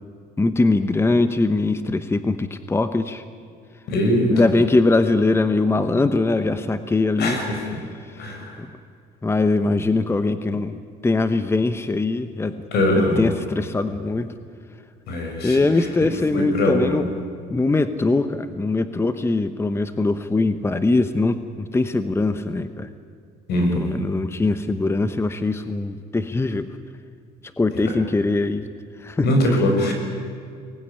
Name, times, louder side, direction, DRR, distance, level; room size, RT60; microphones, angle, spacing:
voice 1, 0.4-3.2 4.3-7.4 8.0-8.3 8.6-8.7 9.2-12.6 12.9-14.3 15.4-17.0 17.5-22.9 23.6-26.8 27.6-28.7 29.0-29.3, left 3 dB, 15° left, 11 dB, 1.0 m, -22 dB
voice 2, 3.9-4.3 7.2-7.6 8.2-8.6 12.7-13.4 15.1-15.9 16.3-17.0 23.5-24.0 27.7-28.0 29.2-29.9, left 1 dB, 75° left, 3 dB, 6.1 m, -22 dB
23.5 x 19.5 x 10.0 m, 2.2 s
cardioid pair, 110°, 17 cm